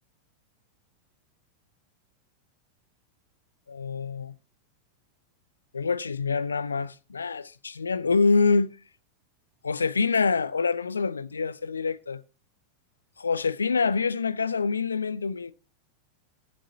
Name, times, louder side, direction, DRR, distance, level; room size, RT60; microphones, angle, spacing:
voice 1, 3.7-4.4 5.7-8.7 9.6-12.2 13.2-15.5, left 4 dB, 75° left, 0.5 m, -26 dB
14.5 x 7.7 x 4.0 m
figure-of-eight pair, 90°, 0 cm